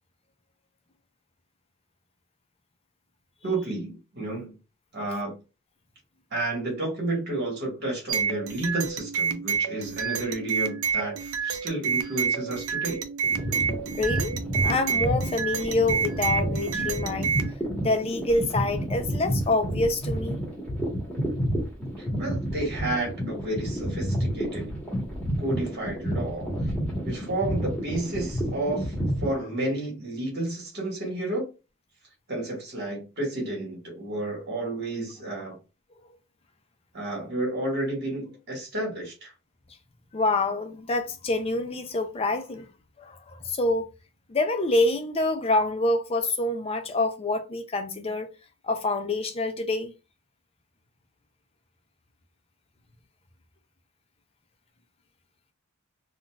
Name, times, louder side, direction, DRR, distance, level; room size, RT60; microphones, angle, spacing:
voice 1, 3.4-4.6 4.9-5.4 6.3-13.0 22.0-24.7 25.4-26.5 27.0-28.9 29.2-31.5 32.3-35.6 36.9-39.3, right 2 dB, 50° right, 1.6 m, -31 dB
sound 1, 8.1-17.5, right 6 dB, 85° right, 0.6 m, -29 dB
sound 2, 13.2-29.3, equal, 5° left, 1.2 m, -30 dB
voice 2, 14.0-14.3 14.6-17.3 17.8-20.4 40.1-42.7 43.0-43.9 44.3-48.3 48.6-49.9, left 2 dB, 25° left, 0.5 m, -26 dB
4.0 x 2.4 x 2.3 m
head